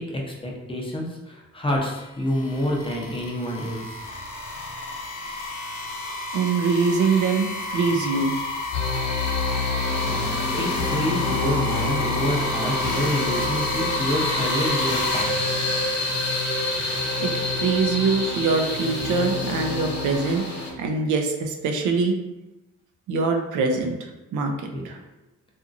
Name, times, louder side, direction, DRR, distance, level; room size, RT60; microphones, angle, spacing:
voice 1, 0.0-3.9 10.1-15.3 24.7-24.8, equal, 20° left, -1 dB, 0.6 m, -28 dB
sound 1, 1.8-15.2, left 2 dB, 80° left, 0.7 m, -31 dB
voice 2, 6.3-8.3 17.2-20.4 20.8-22.1 23.1-24.5 24.8-25.0, right 4 dB, 75° right, 4 dB, 0.5 m, -23 dB
sound 2, 8.7-20.7, left 2 dB, 60° left, 1.1 m, -27 dB
2.8 x 2.5 x 2.4 m, 1.0 s
cardioid pair, 90°, 30 cm